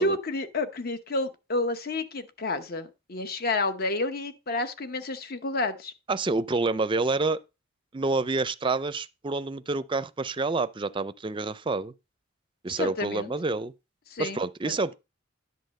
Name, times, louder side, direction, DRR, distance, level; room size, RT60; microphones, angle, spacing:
voice 1, 0.0-5.9 12.7-13.3 14.1-14.8, left 2 dB, 50° left, 1.0 m, -30 dB
voice 2, 6.1-7.4 7.9-11.9 12.6-13.7 14.2-14.9, right 3 dB, 25° right, 0.5 m, -28 dB
10.5 x 4.0 x 6.4 m
head